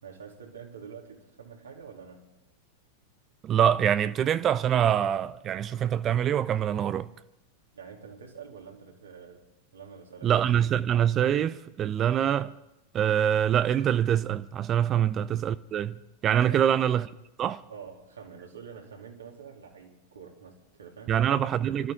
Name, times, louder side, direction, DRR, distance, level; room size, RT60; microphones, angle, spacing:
voice 1, 0.0-2.3 7.7-9.4 9.7-10.3 14.9-15.2 16.5-16.8 17.7-21.4, right 6 dB, 70° right, 3.1 m, -46 dB
voice 2, 3.4-7.1 10.2-12.5 12.9-16.0 16.2-17.1 17.4-17.6 21.1-21.9, right 9 dB, 30° right, 0.5 m, -24 dB
26.5 x 13.5 x 3.8 m
figure-of-eight pair, 90°, 0 cm